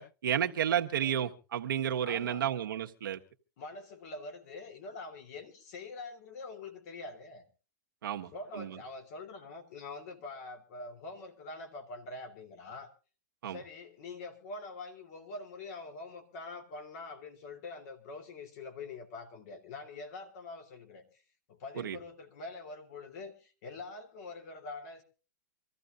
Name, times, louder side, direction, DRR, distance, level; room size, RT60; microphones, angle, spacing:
voice 1, 0.0-3.2 8.0-8.3 8.5-8.8 13.4-13.6 21.8-22.0, right 9 dB, 85° right, 3 dB, 1.4 m, -32 dB
voice 2, 2.0-2.5 3.6-7.4 8.1-12.9 13.4-21.2 21.5-25.0, left 3 dB, 50° left, 6 dB, 3.2 m, -45 dB
26.0 x 14.5 x 2.5 m, 0.35 s
hypercardioid pair, 150°, 11 cm